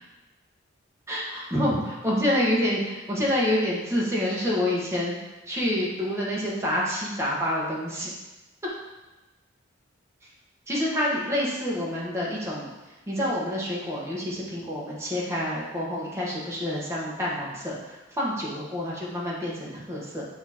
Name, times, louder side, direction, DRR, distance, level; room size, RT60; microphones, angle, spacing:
voice 1, 1.1-5.2 5.5-8.1 10.7-12.7 13.1-17.8 18.2-20.3, left 1 dB, 15° right, -6 dB, 1.3 m, -27 dB
8.6 x 3.0 x 4.2 m, 1.1 s
head